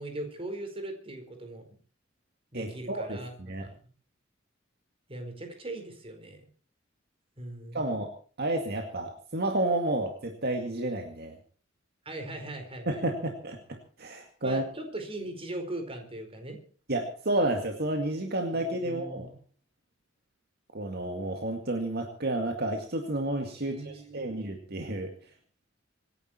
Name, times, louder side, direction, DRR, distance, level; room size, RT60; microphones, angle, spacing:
voice 1, 0.0-1.6 2.5-3.7 5.1-6.4 7.4-7.9 12.0-13.0 14.4-16.6 18.5-19.4 23.6-24.3, right 1 dB, 30° right, 5 dB, 4.6 m, -39 dB
voice 2, 2.5-3.7 7.7-8.1 8.4-11.4 12.9-14.6 16.9-19.3 20.7-25.1, right 1 dB, 55° right, 4 dB, 2.1 m, -31 dB
26.0 x 10.5 x 4.4 m, 0.41 s
head